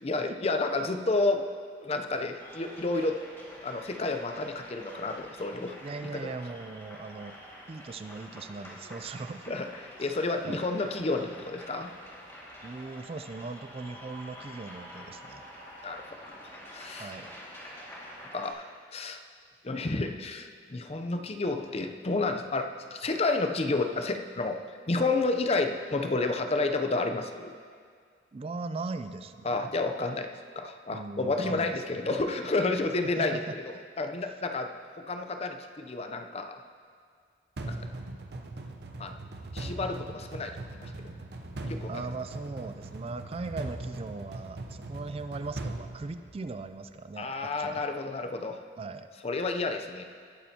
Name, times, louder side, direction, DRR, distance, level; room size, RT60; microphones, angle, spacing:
voice 1, 0.0-1.4 1.8-3.2 3.6-5.8 6.1-6.3 9.5-11.9 15.8-16.4 16.7-17.1 18.3-18.6 18.9-19.2 19.6-27.5 29.4-34.8 35.1-36.6 37.7-37.8 39.0-39.1 39.5-40.5 40.8-40.9 41.6-41.9 47.2-48.6 49.2-50.0, left 3 dB, 35° left, 6 dB, 0.6 m, -30 dB
sound 1, 2.4-18.5, equal, 15° left, 2.0 m, -47 dB
voice 2, 5.8-7.4 7.7-9.5 10.0-10.1 10.4-10.7 12.6-15.5 17.0-17.3 28.3-29.6 30.9-32.1 33.2-33.8 34.2-34.4 41.8-47.9 48.8-49.1, right 3 dB, 35° right, 10 dB, 0.3 m, -39 dB
sound 2, 37.6-46.8, right 2 dB, 65° right, 0.8 m, -40 dB
19.0 x 8.7 x 2.8 m, 2.1 s
head